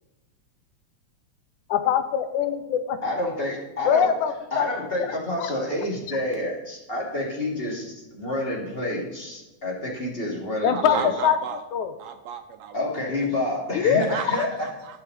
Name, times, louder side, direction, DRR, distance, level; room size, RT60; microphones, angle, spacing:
voice 1, 1.7-3.0 3.9-4.7 10.6-11.0 11.2-11.4 11.7-11.9 13.7-14.0, left 8 dB, 75° left, 10 dB, 2.2 m, -22 dB
voice 2, 3.0-4.1 4.5-11.1 12.7-14.5, left 1 dB, 20° left, -2 dB, 2.3 m, -28 dB
voice 3, 10.7-11.6 12.0-12.9 13.2-13.5 14.0-15.0, right 7 dB, 75° right, 7 dB, 1.8 m, -34 dB
19.5 x 6.7 x 4.1 m, 1.1 s
omnidirectional pair, 3.5 m